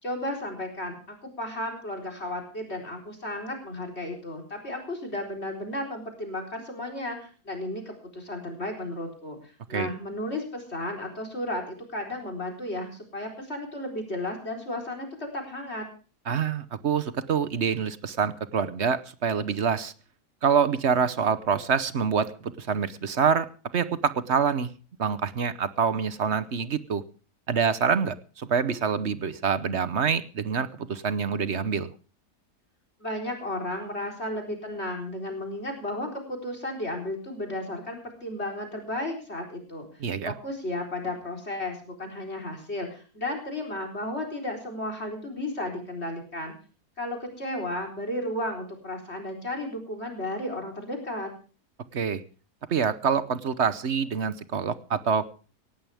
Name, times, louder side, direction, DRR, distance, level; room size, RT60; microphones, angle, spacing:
voice 1, 0.0-15.8 33.0-39.9 40.2-46.5 47.0-51.3, left 1 dB, 40° left, 2 dB, 4.3 m, -34 dB
voice 2, 16.3-19.9 20.4-23.5 23.7-24.7 25.0-27.0 27.5-31.9 40.0-40.3 51.9-52.2 52.7-55.3, right 6 dB, 50° right, 14 dB, 1.1 m, -26 dB
18.0 x 16.5 x 3.5 m, 0.37 s
omnidirectional pair, 1.7 m